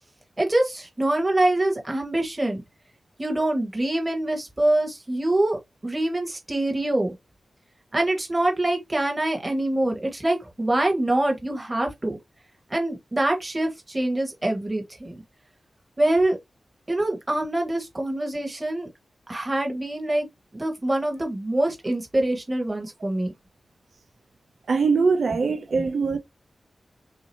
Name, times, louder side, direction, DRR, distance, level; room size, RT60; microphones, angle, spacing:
voice 1, 0.4-2.6 3.2-7.1 7.9-12.2 12.7-15.1 16.0-16.4 16.9-18.9 19.3-20.3 20.5-23.3 25.7-25.9, right 1 dB, 20° right, 1.6 m, -25 dB
voice 2, 24.7-26.2, right 4 dB, 70° right, 0.5 m, -22 dB
6.6 x 2.6 x 2.8 m
wide cardioid pair, 135°, 0 cm